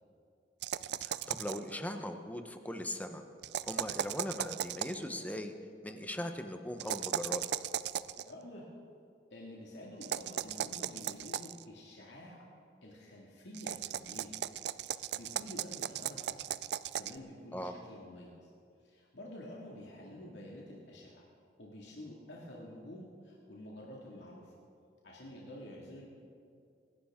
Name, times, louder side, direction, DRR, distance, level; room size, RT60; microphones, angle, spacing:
sound 1, 0.6-1.7 3.4-5.0 6.8-8.2 10.0-11.6 13.5-17.2, right 10 dB, 65° right, 0.4 m, -37 dB
voice 1, 1.0-3.2 3.6-5.5 5.8-7.4 17.5-17.7, left 1 dB, 10° left, 6 dB, 0.9 m, -39 dB
voice 2, 8.2-8.7 9.3-12.4 12.8-14.4 14.9-16.3 17.0-18.5 18.8-21.2 21.6-24.5 25.0-26.1, left 1 dB, 85° left, -3 dB, 2.2 m, -49 dB
26.0 x 11.5 x 3.7 m, 2.4 s
head